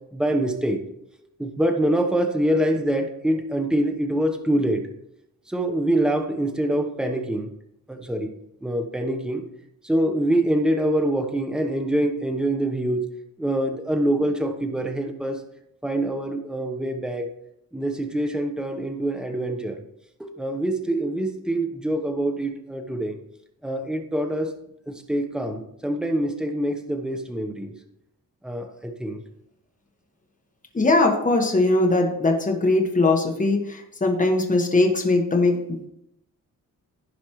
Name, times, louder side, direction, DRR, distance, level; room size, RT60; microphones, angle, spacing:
voice 1, 0.1-0.8 1.4-4.8 5.5-7.5 7.9-8.3 8.6-9.4 9.8-13.1 13.4-15.4 15.8-17.3 17.7-19.8 20.2-23.2 23.6-24.5 24.9-27.7 28.4-29.2, right 1 dB, ahead, 4 dB, 1.0 m, -25 dB
voice 2, 30.7-35.9, left 2 dB, 25° left, 2 dB, 1.6 m, -20 dB
15.5 x 5.2 x 3.2 m, 0.77 s
cardioid pair, 110°, 33 cm